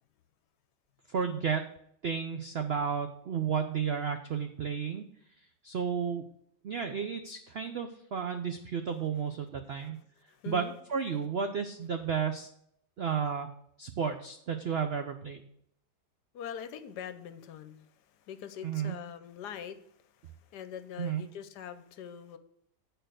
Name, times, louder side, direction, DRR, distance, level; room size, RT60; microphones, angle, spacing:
voice 1, 1.1-1.7 2.0-5.1 5.6-6.2 6.6-10.0 10.5-10.6 10.9-12.5 13.0-13.5 13.8-15.4 18.6-19.0 21.0-21.2, right 7 dB, 80° right, 7 dB, 0.5 m, -32 dB
voice 2, 10.3-10.7 16.3-19.8 20.2-22.4, left 8 dB, 75° left, 11 dB, 1.2 m, -43 dB
8.8 x 4.6 x 6.3 m, 0.71 s
omnidirectional pair, 1.9 m